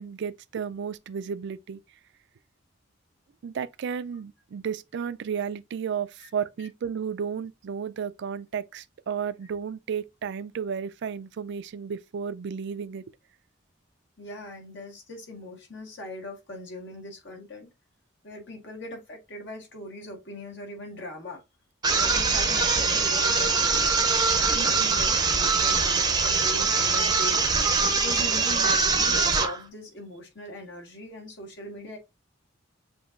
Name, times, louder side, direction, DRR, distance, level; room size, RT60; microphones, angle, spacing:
voice 1, 0.0-1.8 3.4-13.0 24.5-25.0, right 7 dB, 65° right, 0.4 m, -33 dB
voice 2, 14.2-17.7 18.2-21.4 21.9-27.4 27.9-32.0, left 1 dB, 65° left, 1.7 m, -40 dB
sound 1, 21.8-29.6, right 4 dB, 20° right, 0.6 m, -23 dB
7.0 x 2.8 x 2.5 m
head